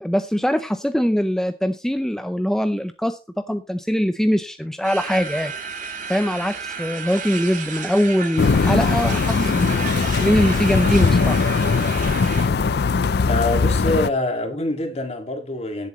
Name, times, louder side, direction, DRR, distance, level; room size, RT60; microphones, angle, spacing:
voice 1, 0.0-3.2 3.5-5.5 6.1-11.4, equal, 5° left, 0.5 m, -22 dB
sound 1, 4.8-12.5, right 5 dB, 50° right, 3.1 m, -32 dB
sound 2, 8.4-14.1, left 4 dB, 65° left, 0.5 m, -20 dB
voice 2, 13.3-15.9, left 2 dB, 40° left, 2.3 m, -25 dB
18.0 x 7.5 x 3.1 m
head